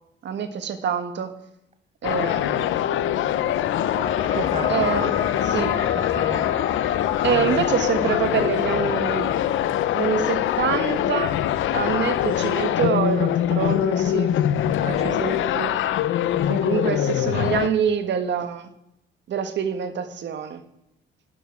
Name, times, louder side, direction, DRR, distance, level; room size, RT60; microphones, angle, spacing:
voice 1, 0.2-1.3 2.0-3.2 4.7-5.1 5.4-5.8 7.2-9.4 9.9-11.4 11.7-14.5 14.9-15.8 16.3-18.7 19.3-20.6, right 7 dB, 65° right, 10 dB, 1.4 m, -26 dB
sound 1, 2.0-17.7, left 11 dB, 80° left, 0.7 m, -23 dB
sound 2, 3.0-14.1, left 5 dB, 25° left, 0.6 m, -35 dB
voice 2, 4.3-4.9 5.9-6.8 14.8-15.5, right 4 dB, 35° right, 10 dB, 1.4 m, -35 dB
12.5 x 11.0 x 4.8 m, 0.82 s
cardioid pair, 90°, 20 cm